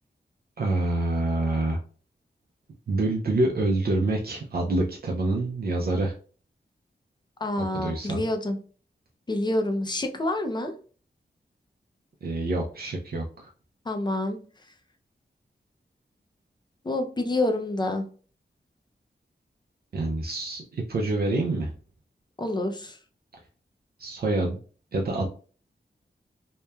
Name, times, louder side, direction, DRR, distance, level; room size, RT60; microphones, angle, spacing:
voice 1, 0.6-1.8 2.9-6.1 7.6-8.2 12.2-13.5 19.9-21.7 24.0-24.6 24.9-25.3, right 2 dB, 55° right, 0 dB, 0.4 m, -26 dB
voice 2, 7.4-8.6 9.3-10.7 13.9-14.4 16.8-18.0 22.4-23.0, left 1 dB, 25° left, 5 dB, 0.4 m, -27 dB
2.9 x 2.1 x 2.2 m, 0.40 s
wide cardioid pair, 110°, 19 cm